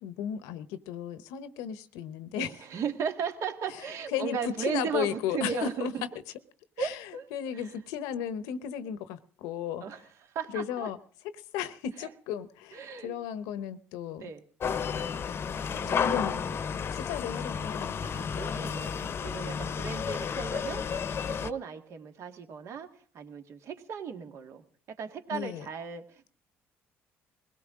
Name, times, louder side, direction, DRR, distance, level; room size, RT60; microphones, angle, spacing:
voice 1, 0.0-2.6 4.1-4.4 4.7-5.9 6.8-9.8 10.5-11.0 11.5-14.2 15.9-16.6 16.9-18.0 25.3-25.6, left 9 dB, 90° left, 13 dB, 0.9 m, -35 dB
voice 2, 2.4-5.9 6.8-7.3 7.5-7.7 9.8-10.9 12.0-12.1 12.7-13.2 14.2-14.5 15.7-16.5 18.0-20.8 21.4-22.9 23.1-26.4, right 6 dB, 65° right, 6 dB, 1.8 m, -36 dB
sound 1, 14.6-21.5, left 6 dB, 45° left, 0.8 m, -32 dB
22.0 x 17.0 x 3.7 m, 0.43 s
supercardioid pair, 85°, 5 cm